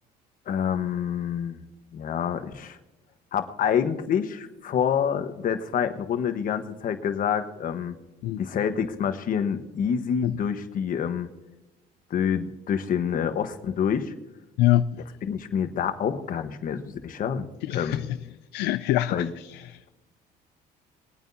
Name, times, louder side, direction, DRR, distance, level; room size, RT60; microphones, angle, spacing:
voice 1, 0.5-1.6 1.9-2.8 3.3-8.0 8.4-11.3 12.1-14.1 15.3-18.0 19.1-19.3, left 8 dB, 55° left, 1.3 m, -27 dB
voice 2, 14.6-15.0 17.6-18.2 18.5-19.9, left 14 dB, 85° left, 0.5 m, -25 dB
23.0 x 9.1 x 2.8 m
cardioid pair, 110°, 17 cm